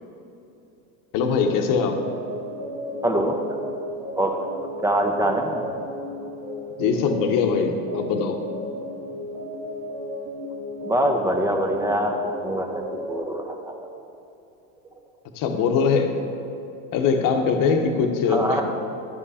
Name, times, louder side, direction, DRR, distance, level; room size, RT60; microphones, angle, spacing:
voice 1, 1.1-2.0 6.8-8.4 15.3-16.1 16.9-18.6, left 5 dB, 50° left, 5 dB, 1.0 m, -22 dB
sound 1, 1.5-13.2, left 1 dB, 85° right, 1.6 m, -34 dB
voice 2, 3.0-3.4 4.2-4.4 4.8-5.6 10.8-12.2 12.4-12.8 13.1-13.7 18.3-18.6, right 1 dB, 5° right, 3 dB, 0.8 m, -23 dB
10.5 x 5.3 x 4.2 m, 2.8 s
supercardioid pair, 105°, 42 cm